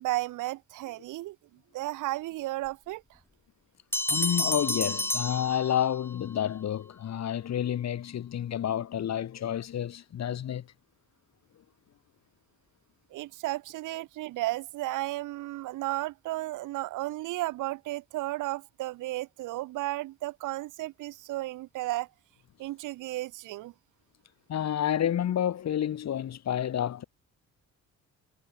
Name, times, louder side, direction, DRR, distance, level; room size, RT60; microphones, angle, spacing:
voice 1, 0.0-1.4 1.7-3.0 13.1-22.1 22.6-23.7, right 17 dB, 90° right, 1.2 m, -33 dB
Bell, 3.9-6.2, left 1 dB, 10° left, 3.0 m, -30 dB
voice 2, 4.1-10.6 24.5-27.0, left 10 dB, 60° left, 2.3 m, -29 dB
cardioid pair, 90°, 30 cm